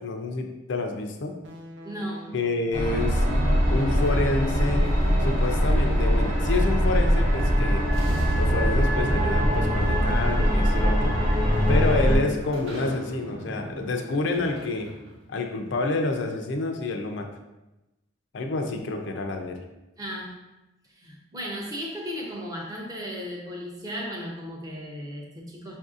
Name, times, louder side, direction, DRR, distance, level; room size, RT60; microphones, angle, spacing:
voice 1, 0.0-1.3 2.3-3.2 3.7-4.9 5.2-7.9 8.3-11.1 11.7-14.9 15.3-17.3 18.3-19.6, left 2 dB, 65° left, 4 dB, 0.4 m, -28 dB
sound 1, 1.4-14.9, right 1 dB, 60° right, 0.5 m, -43 dB
voice 2, 1.8-2.3 10.2-10.3 20.0-20.4 21.0-25.8, equal, 20° right, -2 dB, 0.6 m, -35 dB
sound 2, 2.7-12.2, equal, 40° right, 0.9 m, -22 dB
sound 3, 3.8-6.1 7.4-7.5 7.9-15.4, equal, 85° right, 0.9 m, -44 dB
5.3 x 2.6 x 2.4 m, 0.98 s
head